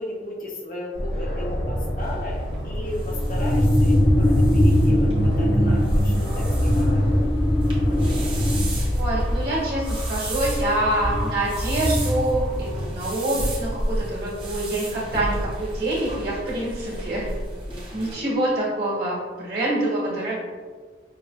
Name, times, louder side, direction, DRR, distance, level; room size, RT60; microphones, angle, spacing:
voice 1, 0.0-4.3 4.5-7.3 17.7-18.3, left 1 dB, 45° left, -2 dB, 0.6 m, -36 dB
Aircraft, 0.9-9.4, equal, 80° left, 1.1 m, -27 dB
sound 1, 1.1-1.2 1.5-1.9 2.9-12.8, equal, ahead, 0.9 m, -22 dB
sound 2, 2.0-18.1, right 1 dB, 25° right, 0.8 m, -33 dB
voice 2, 9.0-17.3 17.9-20.4, right 1 dB, 55° right, -7 dB, 1.5 m, -26 dB
5.8 x 2.5 x 2.2 m, 1.5 s
head